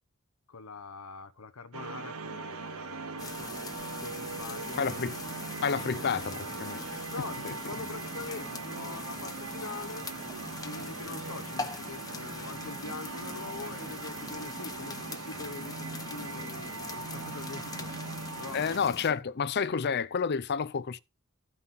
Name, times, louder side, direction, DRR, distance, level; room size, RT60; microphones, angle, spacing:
voice 1, 0.5-3.5 4.0-4.9 7.1-10.1 10.5-17.9 18.4-18.6, left 4 dB, 90° left, 0.9 m, -44 dB
sound 1, 1.7-18.8, right 4 dB, 80° right, 0.7 m, -40 dB
sound 2, 3.2-19.1, left 3 dB, 15° left, 0.9 m, -42 dB
voice 2, 4.8-5.2 5.6-6.8 7.4-7.6 18.5-21.0, left 6 dB, 50° left, 0.5 m, -30 dB
14.0 x 5.8 x 4.0 m
head